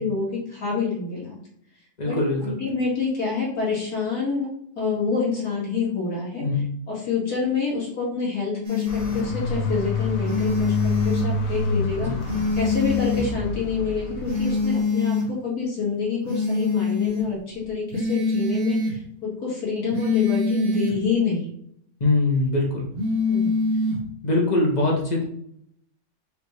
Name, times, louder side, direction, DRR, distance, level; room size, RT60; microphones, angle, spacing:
voice 1, 0.0-1.4 2.1-4.5 4.8-6.5 6.9-10.7 11.0-12.1 12.5-21.5 23.3-23.5, left 5 dB, 65° left, -5 dB, 2.3 m, -27 dB
voice 2, 2.0-2.6 6.4-6.6 12.0-12.2 22.0-22.9 24.2-25.2, left 2 dB, 30° left, -2 dB, 0.9 m, -22 dB
sound 1, 8.6-9.3 10.2-11.3 12.2-13.3 14.2-15.3 16.3-17.3 17.9-19.0 19.9-21.0 22.9-24.0, left 3 dB, 50° right, 0.7 m, -24 dB
sound 2, 8.9-14.8, left 1 dB, 85° left, 1.5 m, -28 dB
5.2 x 2.6 x 3.2 m, 0.68 s
omnidirectional pair, 1.8 m